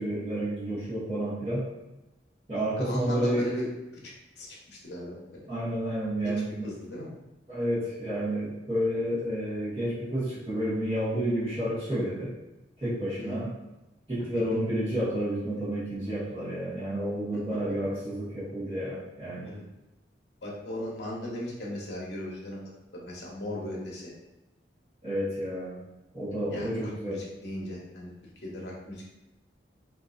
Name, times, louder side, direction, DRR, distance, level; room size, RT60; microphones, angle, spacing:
voice 1, 0.0-1.6 2.5-3.4 5.5-6.7 7.5-12.3 12.8-13.5 14.1-19.5 25.0-25.7 26.1-27.2, right 1 dB, 30° right, -12 dB, 1.4 m, -30 dB
voice 2, 2.8-3.7 3.9-5.4 6.2-7.1 13.2-13.4 17.3-17.4 19.4-19.7 20.4-22.6 22.9-24.1 26.5-28.1 28.4-29.0, left 1 dB, 65° left, -4 dB, 0.8 m, -37 dB
3.0 x 2.6 x 2.5 m, 0.97 s
head